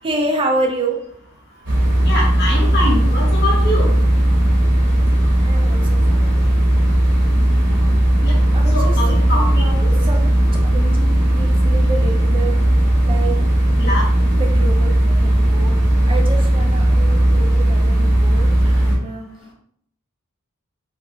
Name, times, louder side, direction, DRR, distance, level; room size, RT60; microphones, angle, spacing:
voice 1, 0.0-1.0 5.4-6.5 7.1-7.2 8.5-10.3 10.7-12.6 13.0-13.4 14.4-19.3, right 2 dB, 25° right, 1 dB, 0.4 m, -28 dB
sound 1, 1.6-19.0, right 1 dB, 50° right, 1.0 m, -16 dB
voice 2, 2.0-3.9 8.2-8.4 8.7-9.5 9.9-10.0 13.8-14.0, left 1 dB, 50° left, -3 dB, 0.6 m, -23 dB
2.8 x 2.4 x 2.7 m, 0.66 s
head